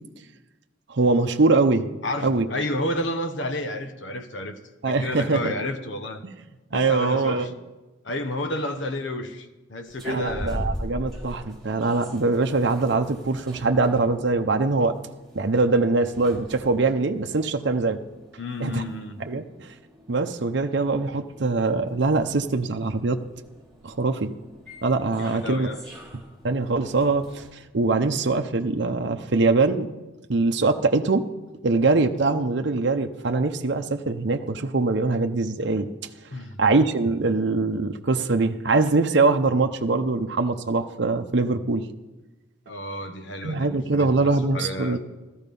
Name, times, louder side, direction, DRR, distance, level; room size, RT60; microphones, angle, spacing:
voice 1, 0.9-1.9 2.2-2.5 4.8-5.5 6.7-7.5 10.1-15.0 15.3-18.0 18.6-18.8 19.2-19.7 20.1-23.3 23.8-24.3 24.8-25.7 26.4-29.9 30.3-31.3 31.6-35.9 36.6-41.9 43.4-45.0, right 3 dB, 60° right, 5 dB, 0.7 m, -23 dB
voice 2, 2.0-4.6 4.8-6.2 6.7-7.5 8.0-10.7 18.4-19.2 25.2-25.8 36.3-36.6 42.7-45.0, left 1 dB, 65° left, 8 dB, 1.2 m, -31 dB
sound 1, 9.9-27.5, equal, ahead, 3.1 m, -41 dB
15.5 x 13.5 x 5.4 m, 1.1 s
head